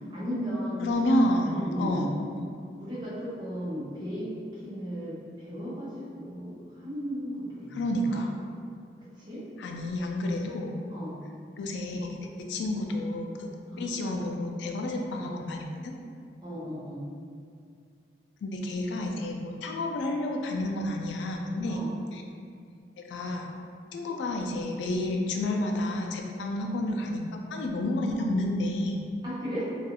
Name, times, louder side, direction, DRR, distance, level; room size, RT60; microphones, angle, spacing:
voice 1, 0.1-0.9 1.5-2.2 2.8-7.8 8.1-8.2 9.2-9.4 10.9-11.2 13.7-13.9 16.4-17.1 21.7-21.9 29.2-29.7, equal, 25° right, -9 dB, 0.6 m, -35 dB
voice 2, 0.8-2.2 7.7-8.3 9.6-10.8 11.6-13.5 13.8-15.9 18.4-21.8 22.1-22.2 23.1-23.5 23.9-29.0, left 1 dB, 80° left, 1 dB, 0.3 m, -30 dB
2.3 x 2.3 x 2.8 m, 2.3 s
head